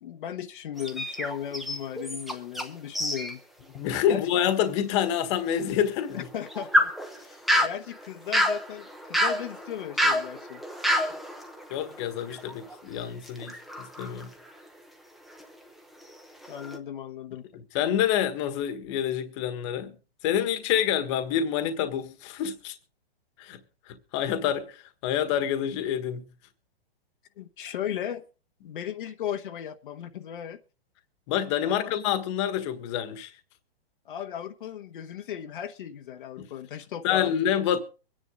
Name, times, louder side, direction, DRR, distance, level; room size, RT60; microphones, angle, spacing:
voice 1, 0.0-3.4 4.1-4.3 6.1-10.6 11.1-11.2 16.5-17.4 27.4-28.2 28.6-30.6 31.6-31.9 34.0-37.3, left 10 dB, 55° left, 1.2 m, -36 dB
sound 1, 0.8-2.7 2.9-3.3 3.8-3.9 4.5-4.6 6.1-12.8 13.2-14.8 15.3-15.6 16.0-16.8, equal, ahead, 0.8 m, -29 dB
voice 2, 3.7-6.3 7.5-7.7 11.7-14.3 17.5-20.0 20.2-22.7 23.4-23.6 23.9-26.3 31.3-33.3 36.4-36.5 37.0-37.8, left 9 dB, 30° left, 1.5 m, -27 dB
23.5 x 10.0 x 3.7 m
hypercardioid pair, 160°, 31 cm